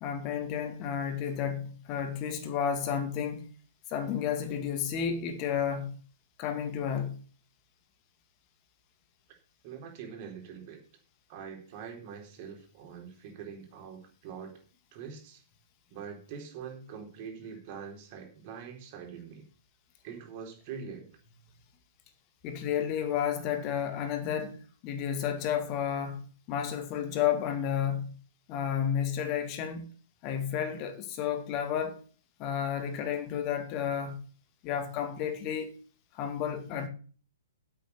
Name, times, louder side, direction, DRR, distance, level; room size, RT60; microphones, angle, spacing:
voice 1, 0.0-3.5 3.9-6.0 6.4-7.2 22.4-24.6 24.8-28.2 28.5-29.9 30.2-32.0 32.4-34.2 34.6-35.8 36.1-36.9, left 8 dB, 30° left, 2.3 m, -31 dB
voice 2, 9.6-10.8 11.3-14.5 14.9-15.4 15.9-19.4 20.0-21.1, right 7 dB, 35° right, 3.9 m, -44 dB
9.1 x 8.3 x 7.0 m
figure-of-eight pair, 115°, 0 cm